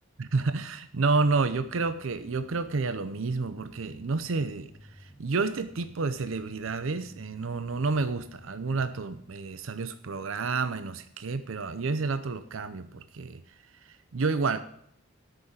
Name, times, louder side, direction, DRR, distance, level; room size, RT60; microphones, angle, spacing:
voice 1, 0.2-13.4 13.9-14.6, right 4 dB, 75° right, 11 dB, 0.6 m, -30 dB
sound 1, 1.4-9.4, equal, 5° right, 1.8 m, -54 dB
8.9 x 6.5 x 8.5 m, 0.69 s
head